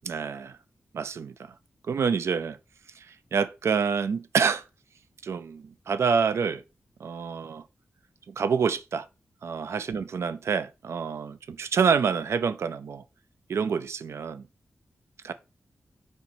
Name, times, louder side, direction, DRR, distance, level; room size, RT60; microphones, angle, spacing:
voice 1, 0.0-0.6 0.9-1.3 1.9-2.6 3.3-4.6 5.2-6.6 7.0-7.6 8.3-9.1 9.4-13.0 13.5-14.4 15.2-15.3, right 6 dB, 75° right, 0.4 m, -27 dB
4.4 x 2.7 x 4.1 m
cardioid pair, 70°, 5 cm